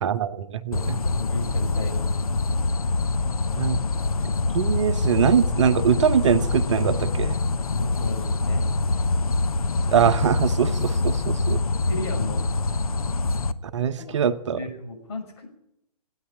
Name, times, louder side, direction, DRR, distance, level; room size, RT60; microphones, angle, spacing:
voice 1, 0.0-1.0 3.6-3.8 4.5-7.4 9.9-11.6 13.7-14.6, right 8 dB, 50° right, 11 dB, 0.9 m, -22 dB
sound 1, 0.7-13.5, left 3 dB, 65° left, 0.9 m, -25 dB
voice 2, 1.0-2.3 7.7-8.7 11.6-12.7 14.0-14.2 14.6-15.6, left 2 dB, 45° left, 3 dB, 6.2 m, -34 dB
16.0 x 9.9 x 9.1 m, 0.81 s
figure-of-eight pair, 125°, 20 cm